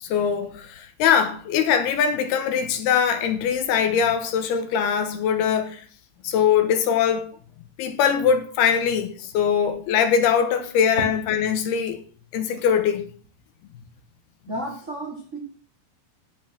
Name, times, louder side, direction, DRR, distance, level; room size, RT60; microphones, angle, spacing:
voice 1, 0.0-5.8 6.2-7.3 7.8-12.0 12.3-13.1, left 7 dB, 75° left, 3.0 m, -22 dB
voice 2, 14.5-15.4, right 1 dB, 45° right, 0.9 m, -32 dB
15.5 x 5.4 x 6.0 m
omnidirectional pair, 4.9 m